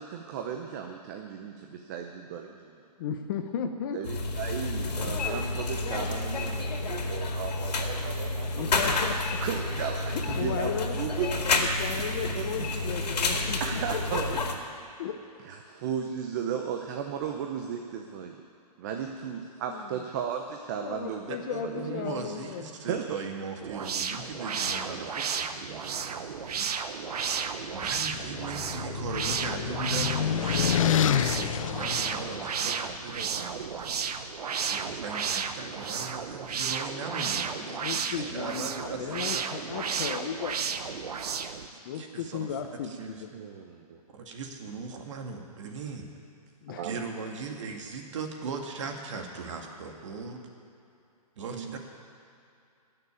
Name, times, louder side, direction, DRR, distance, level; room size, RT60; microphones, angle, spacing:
voice 1, 0.0-2.8 3.9-8.8 9.4-11.6 12.0-12.1 12.4-12.5 13.6-14.4 15.4-18.4 18.8-21.4 21.6-21.8 22.9-23.2 43.3-44.0 46.7-47.0 51.5-51.8, right 7 dB, 30° right, 3 dB, 0.7 m, -35 dB
voice 2, 3.0-4.0 8.6-9.4 10.1-11.0 11.5-14.0 14.3-14.4 15.0-15.2 19.7-20.0 20.7-22.8 37.5-41.2 41.8-43.3 46.6-46.9, left 7 dB, 30° left, 6 dB, 0.8 m, -35 dB
sound 1, 4.0-14.5, left 3 dB, 85° left, 2.3 m, -30 dB
voice 3, 21.3-26.8 27.7-33.9 34.7-39.4 39.8-39.9 41.9-42.5 42.9-43.2 44.1-46.1 46.8-50.4 51.4-51.8, right 4 dB, 50° right, 3 dB, 2.0 m, -39 dB
sound 2, 23.6-41.7, right 6 dB, 70° right, 1.0 m, -33 dB
sound 3, 27.7-32.9, left 10 dB, 55° left, 0.4 m, -29 dB
15.5 x 6.8 x 9.8 m, 2.6 s
hypercardioid pair, 160°, 21 cm